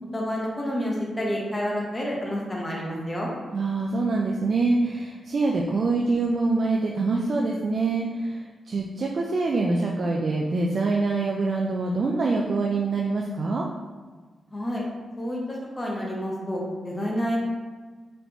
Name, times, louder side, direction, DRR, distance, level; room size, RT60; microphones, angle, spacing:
voice 1, 0.1-3.3 14.5-14.8 15.2-17.4, equal, 15° left, -3 dB, 1.0 m, -29 dB
voice 2, 3.5-13.7, right 3 dB, 55° right, -1 dB, 0.4 m, -25 dB
4.0 x 3.4 x 2.9 m, 1.4 s
cardioid pair, 80°, 0 cm